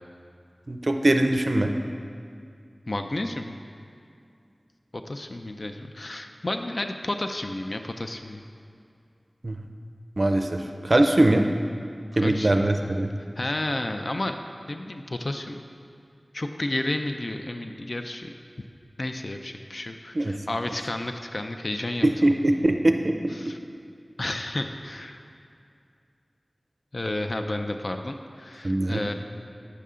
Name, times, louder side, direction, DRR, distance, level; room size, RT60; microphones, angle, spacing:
voice 1, 0.7-1.7 9.4-9.6 10.2-11.4 12.2-13.1 20.2-20.3 22.0-23.1 28.6-29.0, right 1 dB, 55° right, 5 dB, 0.4 m, -21 dB
voice 2, 2.9-3.6 4.9-8.4 12.2-12.7 13.4-14.4 14.7-15.6 16.3-18.3 19.0-22.1 23.3-23.6 24.2-25.2 26.9-29.1, left 1 dB, 60° left, 6 dB, 0.4 m, -31 dB
9.5 x 6.8 x 3.7 m, 2.4 s
wide cardioid pair, 45°, 0 cm